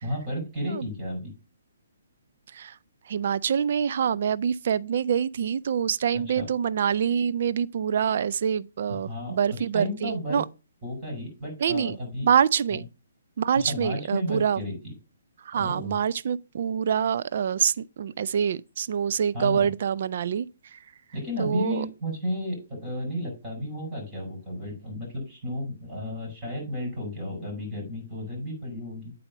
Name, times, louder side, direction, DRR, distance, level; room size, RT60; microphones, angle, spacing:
voice 1, 0.0-1.3 6.1-6.5 8.9-9.3 9.7-10.4 10.8-12.3 12.7-12.8 13.5-14.9 15.5-15.9 19.3-19.7 21.1-29.1, left 1 dB, 20° right, 5.1 m, -33 dB
voice 2, 3.1-10.4 11.6-12.0 12.2-12.8 13.4-14.6 15.4-20.8 21.4-21.9, right 8 dB, 55° right, 0.4 m, -26 dB
8.7 x 4.1 x 5.2 m
hypercardioid pair, 140°, 0 cm